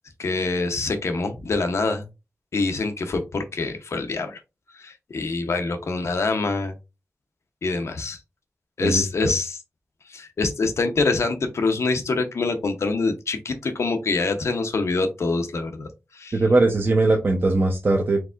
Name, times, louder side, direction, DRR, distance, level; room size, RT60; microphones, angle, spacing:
voice 1, 0.2-2.1 2.5-4.4 4.7-6.7 7.6-8.2 8.8-9.6 10.1-16.4, left 3 dB, 70° left, 6 dB, 0.7 m, -25 dB
voice 2, 8.8-9.3 16.3-18.2, right 2 dB, 45° right, 1 dB, 0.6 m, -20 dB
4.6 x 3.5 x 2.4 m, 0.26 s
wide cardioid pair, 105°, 5 cm